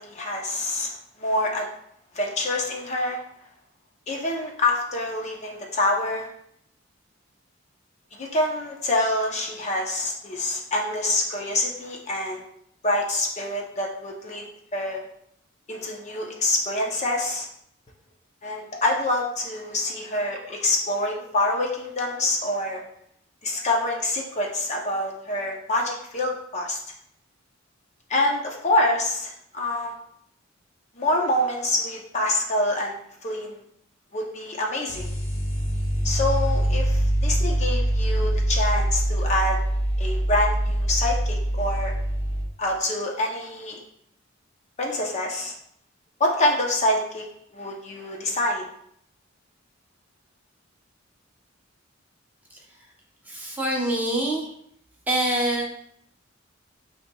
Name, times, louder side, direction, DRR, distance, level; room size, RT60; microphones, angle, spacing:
voice 1, 0.0-1.7 2.1-3.2 4.1-6.3 8.1-12.5 12.8-14.4 14.7-15.0 15.7-17.5 18.4-22.8 23.4-26.8 28.1-29.9 31.0-33.6 34.1-35.1 36.0-39.6 40.0-41.9 42.6-43.8 44.8-45.5 46.2-47.2 47.5-48.7, left 1 dB, 35° left, 0 dB, 0.6 m, -26 dB
sound 1, 34.9-42.4, right 1 dB, 85° left, 1.1 m, -24 dB
voice 2, 53.3-54.5 55.1-55.6, right 1 dB, 10° right, -3 dB, 0.8 m, -25 dB
8.3 x 2.8 x 2.2 m, 0.70 s
head